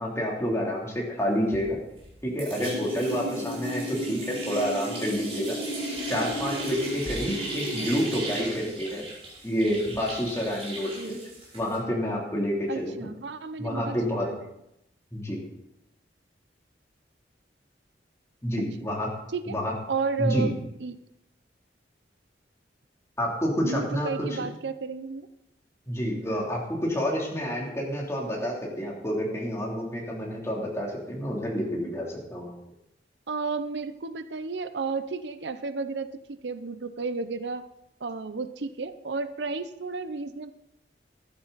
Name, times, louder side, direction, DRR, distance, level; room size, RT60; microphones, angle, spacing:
voice 1, 0.0-1.8 2.2-5.6 6.1-9.0 9.4-11.2 11.5-13.1 13.6-14.2 15.1-15.4 18.4-19.1 19.5-19.7 20.2-20.5 23.2-24.3 25.9-32.5, equal, 15° left, -3 dB, 3.2 m, -29 dB
sound 1, 1.5-2.1 2.4-11.8, right 1 dB, 35° right, 5.5 m, -34 dB
voice 2, 12.7-14.5 19.3-19.6 19.9-20.5 20.8-21.0 23.6-25.3 33.3-37.6 38.0-40.5, right 4 dB, 75° right, 12 dB, 0.7 m, -32 dB
14.0 x 12.0 x 4.1 m, 0.83 s
head